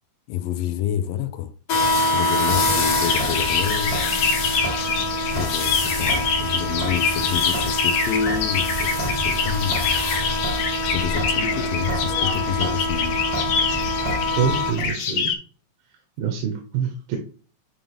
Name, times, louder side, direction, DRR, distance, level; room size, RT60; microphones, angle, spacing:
voice 1, 0.3-1.5 2.1-4.1 5.3-9.9 10.9-13.2, left 10 dB, 85° left, 2.4 m, -28 dB
sound 1, 1.7-14.7, left 1 dB, 50° left, 2.0 m, -26 dB
Sink (filling or washing) / Drip, 2.4-14.9, left 1 dB, 25° right, 0.9 m, -32 dB
sound 2, 3.0-15.3, left 6 dB, 65° left, 1.9 m, -26 dB
voice 2, 14.4-15.3 16.2-17.2, right 7 dB, 80° right, 2.8 m, -25 dB
10.5 x 3.6 x 3.5 m
omnidirectional pair, 4.0 m